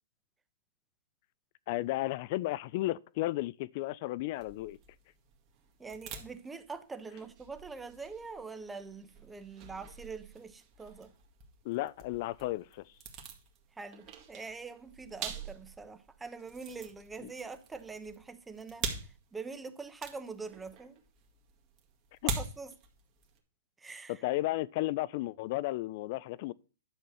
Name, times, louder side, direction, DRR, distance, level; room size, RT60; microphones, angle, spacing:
voice 1, 1.7-4.8 11.6-12.9 22.2-22.3 24.2-26.5, left 17 dB, 40° left, 0.4 m, -33 dB
sound 1, 4.4-23.4, right 5 dB, 30° right, 2.0 m, -45 dB
voice 2, 5.8-11.1 13.7-21.0 22.4-22.7 23.8-24.2, right 4 dB, 10° right, 0.8 m, -44 dB
10.5 x 4.4 x 6.9 m
hypercardioid pair, 150°, 0 cm